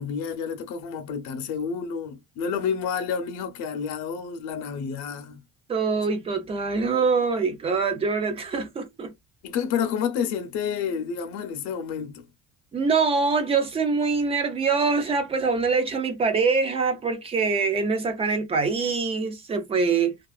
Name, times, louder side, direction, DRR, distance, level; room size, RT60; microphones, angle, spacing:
voice 1, 0.0-5.4 9.4-12.3, left 7 dB, 65° left, 0.6 m, -29 dB
voice 2, 5.7-9.1 12.7-20.2, right 4 dB, 20° right, 0.4 m, -24 dB
2.4 x 2.3 x 2.3 m
cardioid pair, 165°, 30 cm